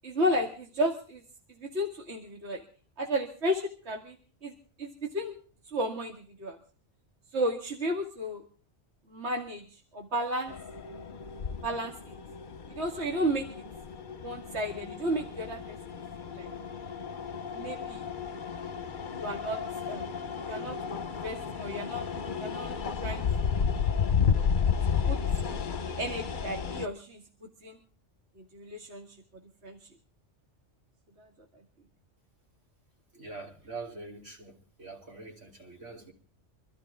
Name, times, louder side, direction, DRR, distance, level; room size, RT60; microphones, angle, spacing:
voice 1, 0.0-1.2 1.6-2.6 3.0-4.2 4.4-4.5 4.8-5.3 5.7-6.6 7.3-8.4 9.1-10.5 11.6-12.2 12.7-13.5 14.2-16.0 16.3-16.5 17.5-18.1 19.1-19.6 19.9-20.1 20.5-22.1 22.4-22.8 23.0-23.6 25.0-25.2 25.8-27.8 28.5-29.1 29.6-29.9 31.2-31.3, equal, 65° right, 2.3 m, -33 dB
sound 1, 10.5-26.9, left 6 dB, 45° left, 1.0 m, -32 dB
voice 2, 33.1-36.1, right 3 dB, 90° right, 3.9 m, -44 dB
25.5 x 13.5 x 3.6 m
omnidirectional pair, 1.2 m